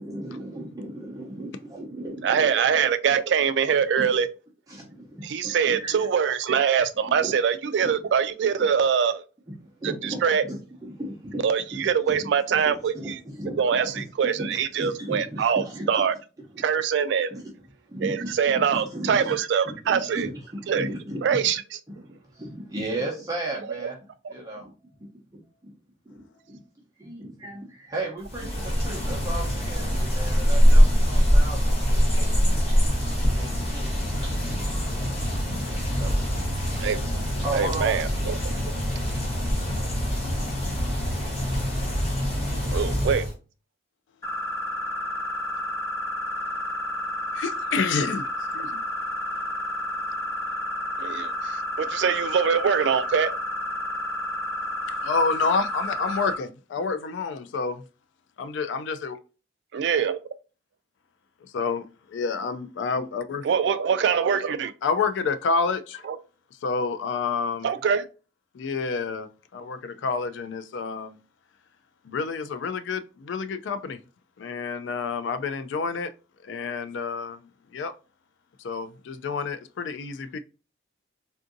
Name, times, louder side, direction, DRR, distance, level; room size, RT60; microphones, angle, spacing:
voice 1, 0.0-2.5 4.0-4.1 4.7-5.9 7.2-7.3 7.8-7.9 9.8-10.6 10.8-11.4 12.7-13.6 14.5-15.8 16.5-16.6 17.3-17.4 17.9-19.3 19.9-21.2 22.0-24.0 24.3-24.7 25.0-25.7 26.1-26.6 27.0-31.8 32.1-32.6 33.4-34.6 35.3-35.7 36.0-36.1 37.4-38.8, right 1 dB, 20° right, 0.6 m, -35 dB
voice 2, 2.2-4.3 5.2-9.2 9.8-10.4 11.4-13.2 13.6-16.1 16.6-17.4 18.0-20.3 20.7-20.9 21.2-21.8 23.8-23.9 36.8-37.0 37.5-38.3 42.7-43.2 51.0-53.3 59.7-60.2 63.4-64.7 66.0-66.2 67.6-68.0, right 7 dB, 70° right, 0.3 m, -24 dB
sound 1, 28.2-43.3, equal, 35° left, 1.1 m, -23 dB
sound 2, 44.2-56.3, left 1 dB, 15° left, 0.7 m, -31 dB
voice 3, 47.3-48.3 48.5-48.8 55.0-57.8 58.4-59.2 61.5-63.5 64.8-66.1 66.6-67.7 68.5-71.2 72.0-74.0 74.4-76.1 76.5-77.4 77.7-77.9 78.6-80.4, left 4 dB, 80° left, 0.3 m, -28 dB
3.5 x 2.5 x 2.5 m
head